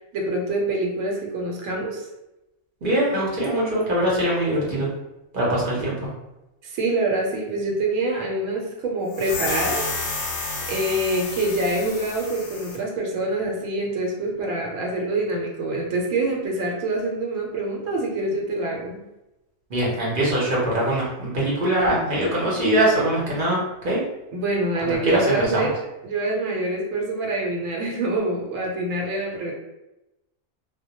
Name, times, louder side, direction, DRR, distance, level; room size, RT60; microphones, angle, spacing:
voice 1, 0.1-2.0 5.7-5.8 6.6-10.3 10.7-19.0 24.3-25.7 26.0-29.5, right 2 dB, 75° right, -1 dB, 1.0 m, -26 dB
voice 2, 2.8-4.9 5.3-6.1 19.7-23.6 23.8-24.0 24.8-25.7, right 1 dB, 50° right, -5 dB, 0.7 m, -22 dB
sound 1, 9.1-12.8, left 3 dB, 65° left, 0.8 m, -30 dB
2.1 x 2.1 x 2.7 m, 0.94 s
omnidirectional pair, 1.4 m